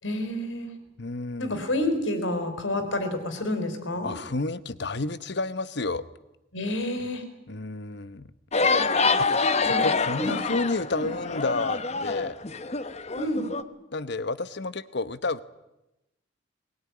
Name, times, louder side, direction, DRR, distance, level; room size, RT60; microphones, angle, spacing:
voice 1, 0.0-0.7 1.4-4.1 6.5-7.2 9.6-9.9 10.2-10.4 10.9-11.1 13.2-13.4, left 1 dB, 85° left, 8 dB, 4.3 m, -29 dB
voice 2, 1.0-1.6 4.0-6.0 7.5-8.3 9.2-12.4 13.9-15.4, left 3 dB, 60° left, 15 dB, 1.0 m, -30 dB
sound 1, 8.5-13.6, left 4 dB, 35° left, 1.1 m, -26 dB
21.0 x 20.0 x 9.7 m, 0.92 s
head